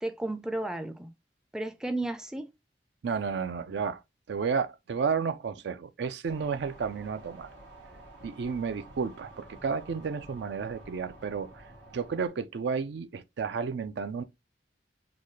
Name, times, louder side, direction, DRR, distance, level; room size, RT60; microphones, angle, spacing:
voice 1, 0.0-1.1 1.5-2.5, right 2 dB, 5° right, 0.4 m, -33 dB
voice 2, 3.0-4.0 4.3-7.5 8.2-11.6 11.9-14.2, right 5 dB, 70° right, 0.4 m, -32 dB
sound 1, 6.3-12.3, right 1 dB, 90° right, 1.6 m, -50 dB
4.0 x 2.2 x 3.1 m
head